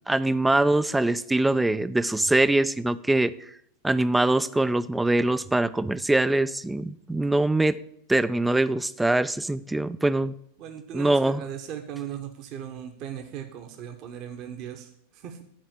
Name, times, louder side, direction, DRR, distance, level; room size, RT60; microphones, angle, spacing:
voice 1, 0.1-3.3 3.8-7.8 8.1-10.3 10.9-11.4, right 2 dB, 5° right, 16 dB, 0.4 m, -23 dB
voice 2, 10.6-15.4, right 9 dB, 40° right, 5 dB, 1.1 m, -38 dB
10.5 x 5.0 x 7.3 m, 0.73 s
figure-of-eight pair, 90°, 0 cm